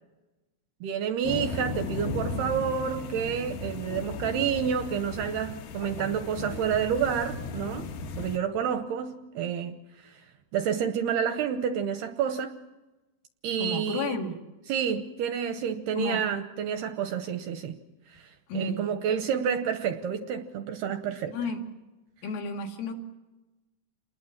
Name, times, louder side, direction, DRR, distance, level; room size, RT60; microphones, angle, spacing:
voice 1, 0.8-7.9 8.2-9.8 10.0-10.2 10.5-12.5 13.4-14.2 14.7-17.8 18.1-21.4, right 8 dB, 75° right, 8 dB, 2.4 m, -29 dB
sound 1, 1.2-8.4, left 3 dB, 65° left, 2.7 m, -36 dB
voice 2, 13.6-14.4 16.0-16.2 18.5-18.9 21.3-21.6 22.2-22.9, left 3 dB, 85° left, 2 dB, 5.0 m, -32 dB
28.0 x 20.5 x 7.3 m, 1.1 s
omnidirectional pair, 5.6 m